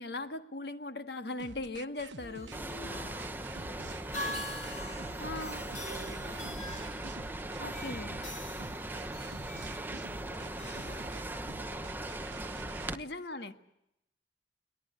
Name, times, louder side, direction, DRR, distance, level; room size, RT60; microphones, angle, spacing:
voice 1, 0.0-2.5 5.2-5.6 7.6-8.2 12.9-13.5, left 2 dB, 60° left, 9 dB, 1.6 m, -39 dB
sound 1, 1.4-12.9, right 3 dB, 75° right, 1.0 m, -48 dB
sound 2, 2.2-11.8, left 1 dB, 40° left, 4.9 m, -45 dB
sound 3, 2.5-13.0, right 1 dB, 10° right, 1.0 m, -39 dB
voice 2, 2.6-4.5 4.9-6.6 7.6-9.8 10.3-13.5, left 1 dB, 85° left, 7 dB, 5.4 m, -59 dB
23.0 x 19.5 x 9.5 m, 0.82 s
head